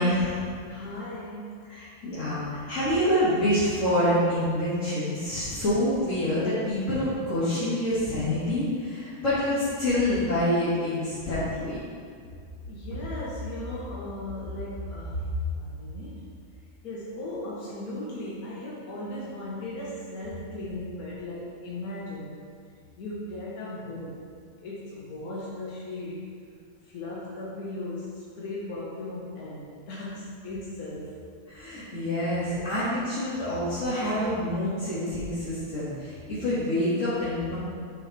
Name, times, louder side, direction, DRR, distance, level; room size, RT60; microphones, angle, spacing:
voice 1, 0.0-0.5 1.7-11.8 31.5-37.6, left 1 dB, 60° left, -12 dB, 2.3 m, -27 dB
voice 2, 0.6-1.6 12.6-16.3 16.8-22.4 23.0-24.2 24.6-26.3 26.9-31.2, left 1 dB, 85° left, -6 dB, 1.6 m, -36 dB
9.1 x 5.6 x 4.1 m, 2.2 s
omnidirectional pair, 1.5 m